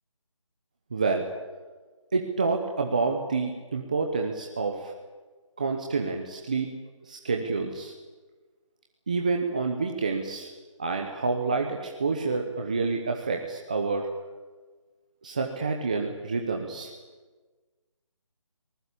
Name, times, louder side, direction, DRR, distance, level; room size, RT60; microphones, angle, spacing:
voice 1, 0.9-1.3 2.1-4.9 5.6-6.7 7.1-7.9 9.1-10.5 10.8-14.1 15.2-16.9, right 4 dB, 15° right, 2 dB, 0.9 m, -28 dB
24.5 x 19.5 x 8.4 m, 1.3 s
figure-of-eight pair, 175°, 17 cm